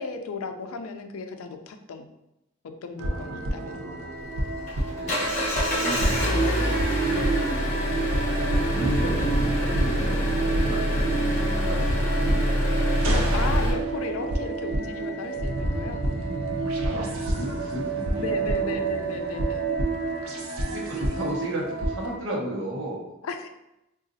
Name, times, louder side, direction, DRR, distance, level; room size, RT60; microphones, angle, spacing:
voice 1, 0.0-2.1 2.6-3.9 7.1-7.4 13.0-16.0 18.2-19.7 23.2-23.5, left 4 dB, 85° left, 6 dB, 0.4 m, -35 dB
sound 1, 3.0-22.2, right 3 dB, 80° right, 0.5 m, -28 dB
voice 2, 3.5-4.1 4.8-6.8 8.3-12.8 16.4-18.8 20.6-23.1, equal, 65° right, -3 dB, 0.8 m, -35 dB
Engine, 4.2-13.7, equal, 35° left, 1.0 m, -26 dB
3.8 x 2.4 x 2.6 m, 0.89 s
head